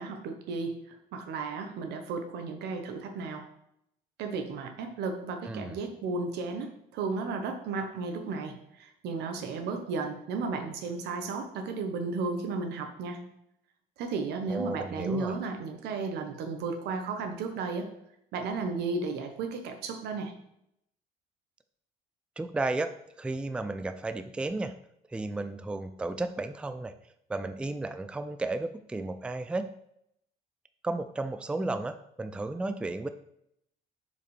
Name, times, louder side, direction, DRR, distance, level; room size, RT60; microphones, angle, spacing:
voice 1, 0.0-3.5 4.2-13.2 14.0-17.9 18.3-20.3, right 4 dB, 80° right, 6 dB, 1.1 m, -34 dB
voice 2, 5.4-5.8 14.5-15.3 22.4-24.7 25.1-26.9 27.3-29.7 30.8-33.1, right 2 dB, 5° right, 10 dB, 0.3 m, -33 dB
6.8 x 5.1 x 3.3 m, 0.77 s
cardioid pair, 110°, 17 cm